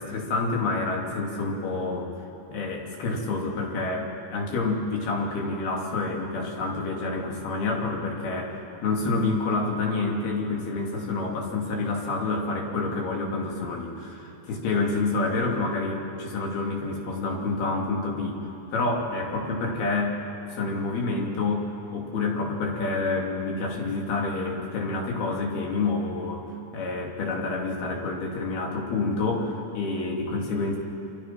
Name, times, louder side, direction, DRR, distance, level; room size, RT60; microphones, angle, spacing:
voice 1, 0.0-2.1 2.5-18.4 18.7-20.2 20.5-26.4 26.7-30.8, left 3 dB, 70° left, 0 dB, 4.7 m, -28 dB
29.0 x 25.5 x 6.0 m, 2.7 s
omnidirectional pair, 4.6 m